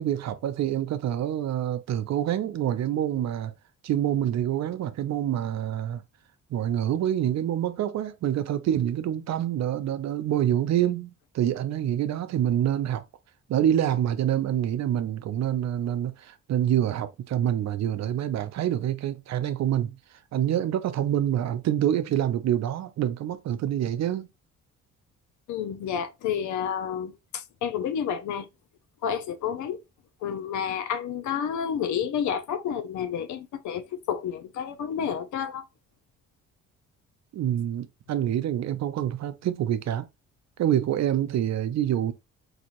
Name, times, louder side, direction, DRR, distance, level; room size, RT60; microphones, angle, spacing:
voice 1, 0.0-3.5 3.8-6.0 6.5-13.0 13.5-20.0 20.3-24.3 37.3-40.0 40.6-42.1, right 11 dB, 60° right, 0.6 m, -26 dB
voice 2, 25.5-28.5 29.0-29.8 30.2-35.6, left 8 dB, 75° left, 0.6 m, -30 dB
4.1 x 2.6 x 2.9 m
cardioid pair, 90°, 30 cm